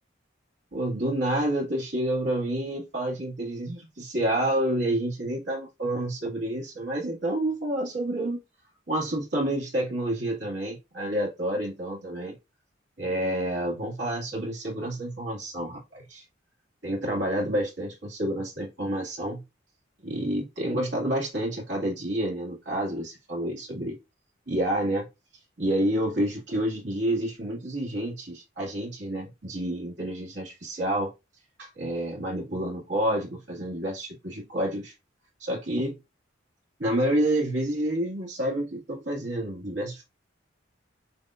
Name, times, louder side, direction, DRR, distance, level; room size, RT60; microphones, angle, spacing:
voice 1, 0.7-8.4 8.9-12.3 13.0-16.2 16.8-19.4 20.0-24.0 24.5-25.1 25.6-31.1 31.6-34.9 35.4-36.0 36.8-40.1, right 1 dB, 60° right, 2.1 m, -29 dB
7.1 x 2.9 x 2.5 m
head